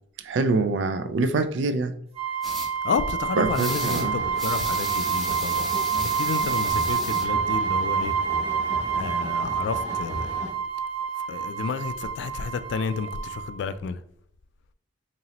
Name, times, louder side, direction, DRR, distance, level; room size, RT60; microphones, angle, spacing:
voice 1, 0.2-1.9 3.4-4.2, right 3 dB, 70° right, 0.4 m, -25 dB
sound 1, 2.2-13.6, right 7 dB, 35° right, 0.7 m, -28 dB
sound 2, 2.4-2.7 3.5-4.1 4.4-7.3, left 1 dB, ahead, 0.6 m, -35 dB
voice 2, 2.8-5.7 6.1-8.1 8.9-10.4 11.3-14.0, left 5 dB, 70° left, 0.3 m, -31 dB
sound 3, 3.6-10.5, left 1 dB, 40° left, 0.8 m, -37 dB
4.0 x 2.9 x 2.9 m
head